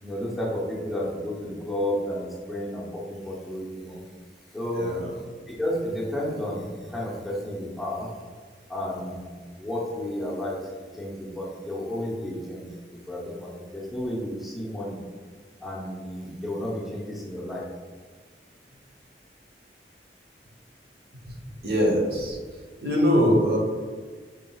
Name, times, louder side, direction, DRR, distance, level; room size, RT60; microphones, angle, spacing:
voice 1, 0.0-4.0 4.5-4.9 5.5-8.1 8.7-9.3 9.6-10.6 10.9-12.7 13.1-15.0 15.6-17.6, left 1 dB, ahead, -6 dB, 0.8 m, -32 dB
voice 2, 4.7-5.2 21.6-22.4 22.8-23.6, equal, 60° right, -1 dB, 0.9 m, -22 dB
5.3 x 3.6 x 2.3 m, 1.5 s
head